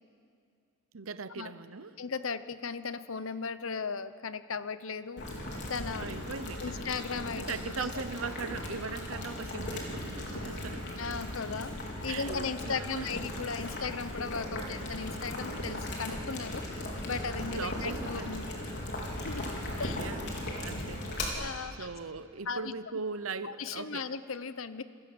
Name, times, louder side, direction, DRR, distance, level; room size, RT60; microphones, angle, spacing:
voice 1, 0.9-2.0 6.0-6.9 7.4-10.8 12.1-13.1 17.5-18.5 19.8-21.0 21.8-24.1, right 4 dB, 80° right, 13 dB, 0.9 m, -39 dB
voice 2, 2.0-5.3 5.7-6.1 6.6-8.0 11.0-11.7 12.0-16.6 17.0-20.1 21.3-21.9 22.5-22.7 23.4-24.8, left 5 dB, 75° left, 13 dB, 0.9 m, -37 dB
Boiling, 5.2-21.3, left 1 dB, 55° left, 4.7 m, -37 dB
28.0 x 20.5 x 8.0 m, 2.3 s
head